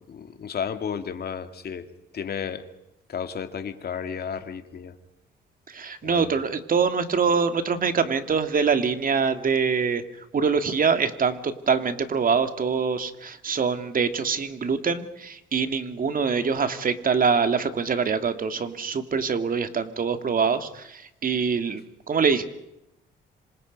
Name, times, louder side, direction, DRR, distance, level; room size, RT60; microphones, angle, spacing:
voice 1, 0.0-1.9 2.1-2.7 3.1-4.9 6.0-6.3, left 7 dB, 50° left, 8 dB, 2.4 m, -33 dB
voice 2, 5.7-10.0 10.3-22.4, right 5 dB, 45° right, 8 dB, 2.4 m, -24 dB
26.5 x 26.5 x 5.4 m, 0.85 s
cardioid pair, 90°, 20 cm